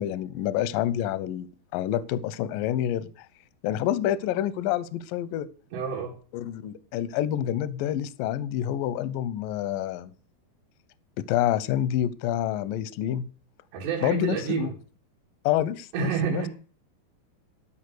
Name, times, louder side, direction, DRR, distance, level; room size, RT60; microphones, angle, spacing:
voice 1, 0.0-1.5 1.7-3.3 3.6-5.5 6.3-10.1 11.2-13.2 14.0-14.7 15.4-16.5, left 11 dB, 80° left, 16 dB, 2.0 m, -28 dB
voice 2, 5.7-6.2 13.7-14.7 15.9-16.5, right 7 dB, 80° right, -2 dB, 4.3 m, -28 dB
13.0 x 5.6 x 6.5 m, 0.39 s
omnidirectional pair, 4.8 m